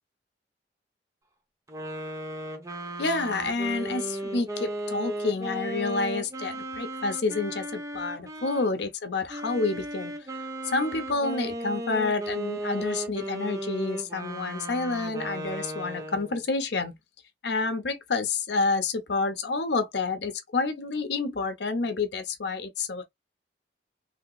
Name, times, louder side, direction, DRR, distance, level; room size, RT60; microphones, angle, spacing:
sound 1, 1.7-8.7 9.3-16.5, right 1 dB, 20° right, 0.8 m, -35 dB
voice 1, 3.0-10.2 10.6-17.0 17.4-23.0, left 3 dB, 70° left, 0.7 m, -29 dB
3.3 x 2.9 x 2.3 m
head